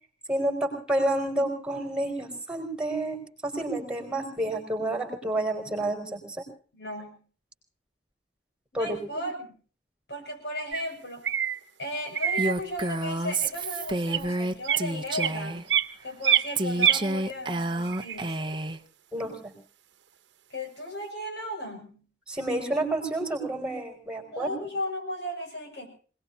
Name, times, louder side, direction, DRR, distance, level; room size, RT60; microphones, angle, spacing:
voice 1, 0.3-6.4 8.7-9.2 19.1-19.5 22.3-24.5, right 1 dB, 5° right, 3 dB, 4.9 m, -29 dB
voice 2, 6.7-7.2 8.7-9.5 10.1-11.3 11.8-15.7 16.0-18.4 20.5-22.0 24.3-25.9, left 1 dB, 70° left, 2 dB, 6.6 m, -35 dB
sound 1, 10.7-10.9 11.2-11.6 12.1-12.5 13.3-13.4 14.0-14.2 14.6-14.9 15.1-15.9 16.2-17.0 17.9-18.5, right 9 dB, 90° right, 0.9 m, -25 dB
Female speech woman speaking, 12.4-15.7 16.6-18.8, right 2 dB, 25° right, 0.8 m, -29 dB
26.5 x 20.0 x 2.7 m, 0.40 s
head